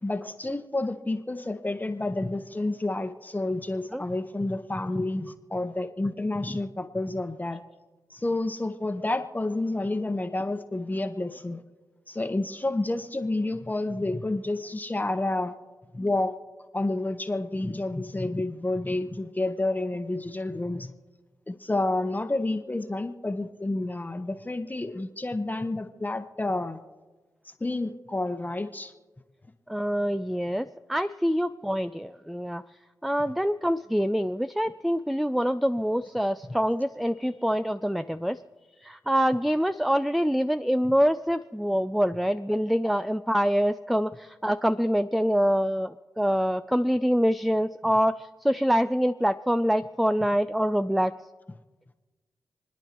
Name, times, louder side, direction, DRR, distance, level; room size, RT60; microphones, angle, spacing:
voice 1, 0.0-7.6 8.1-11.6 12.1-15.5 15.9-16.3 16.7-20.9 21.5-26.8 27.6-28.9, left 2 dB, 25° left, 7 dB, 1.1 m, -29 dB
voice 2, 29.7-32.6 33.0-38.4 38.8-51.1, equal, ahead, 12 dB, 0.4 m, -25 dB
29.0 x 9.9 x 3.0 m, 1.3 s
supercardioid pair, 40°, 7 cm